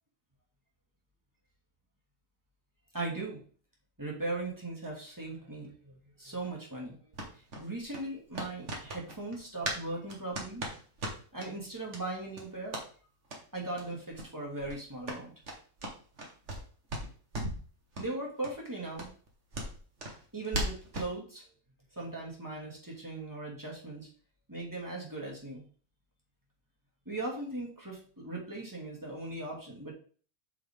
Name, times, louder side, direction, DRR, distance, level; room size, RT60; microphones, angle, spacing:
voice 1, 2.9-3.4 4.0-7.0 7.6-10.7 11.3-12.8 13.5-15.3 18.0-19.1 20.3-21.4 21.9-24.1 24.5-25.6 27.1-29.9, right 2 dB, 10° right, -3 dB, 2.6 m, -38 dB
sound 1, 7.1-9.8 10.1-11.5 11.9-12.0 12.3-12.9 13.2-13.4 13.7-13.8 14.1-14.3 14.6-16.6 16.9-17.6 17.9-18.1 18.4-18.5 18.9-21.1, right 1 dB, 50° right, 2.2 m, -38 dB
8.1 x 6.1 x 3.8 m, 0.42 s
omnidirectional pair, 1.6 m